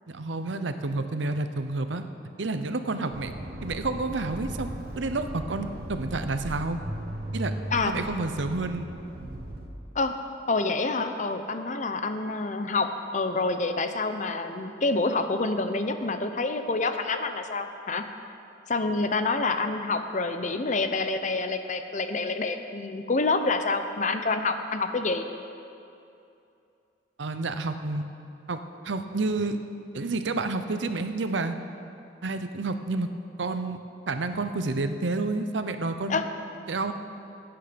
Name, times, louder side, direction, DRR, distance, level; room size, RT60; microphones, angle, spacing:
voice 1, 0.1-2.0 2.4-3.3 3.6-4.7 5.0-6.8 7.3-7.5 7.9-8.9 27.2-28.0 28.5-29.6 29.9-31.6 32.2-33.1 33.4-33.8 34.1-36.2 36.7-36.9, right 3 dB, 80° right, 9 dB, 0.8 m, -29 dB
Accelerating revving vroom, 3.1-9.7, right 1 dB, 55° right, 1.5 m, -37 dB
voice 2, 10.5-18.0 18.7-25.2 36.1-36.3, left 3 dB, 40° left, 8 dB, 0.7 m, -27 dB
17.0 x 9.1 x 5.2 m, 2.6 s
head